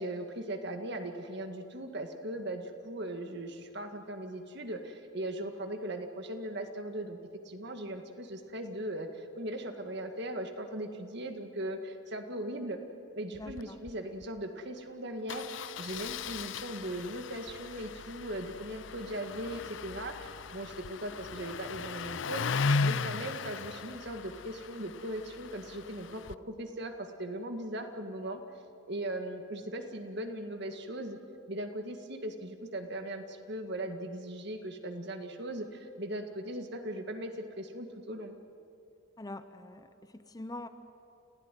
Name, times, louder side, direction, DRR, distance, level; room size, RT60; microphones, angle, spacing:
voice 1, 0.0-7.2 7.4-12.8 13.1-28.4 28.9-31.2 31.5-38.4, right 1 dB, 55° right, 6 dB, 2.0 m, -39 dB
Engine starting, 13.3-13.6 13.9-14.0 14.2-14.4 15.3-26.3, left 4 dB, 65° left, 0.5 m, -37 dB
voice 2, 13.4-13.8 39.2-40.7, left 2 dB, 20° left, 10 dB, 0.7 m, -44 dB
29.0 x 16.5 x 9.2 m, 2.7 s
head